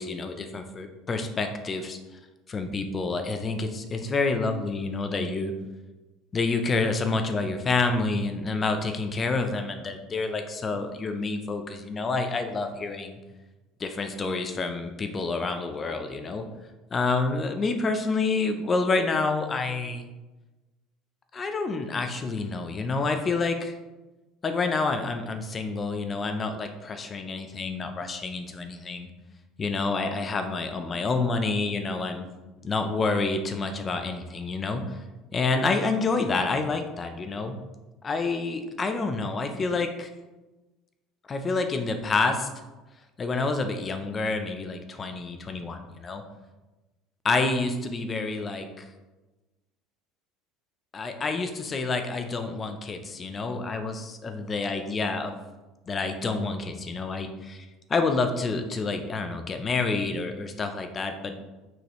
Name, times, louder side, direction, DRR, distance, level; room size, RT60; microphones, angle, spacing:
voice 1, 0.0-2.0 2.5-5.5 6.3-13.2 13.8-16.5 16.9-20.0 21.3-23.8 24.4-29.1 29.6-32.3 32.6-35.0 35.3-37.6 38.0-40.1 41.3-42.5 43.2-46.2 47.2-48.9 50.9-55.3 55.9-61.3, left 3 dB, 20° left, 7 dB, 0.6 m, -28 dB
6.3 x 5.1 x 3.0 m, 1.1 s
cardioid pair, 150°, 0 cm